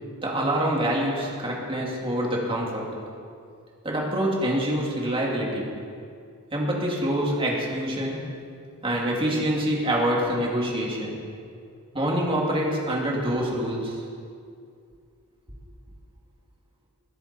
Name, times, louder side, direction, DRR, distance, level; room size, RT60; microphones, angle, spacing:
voice 1, 0.2-2.9 3.8-5.7 6.5-8.3 8.8-11.2 11.9-14.0, right 1 dB, 25° right, -3 dB, 2.6 m, -26 dB
20.5 x 10.0 x 4.4 m, 2.3 s
head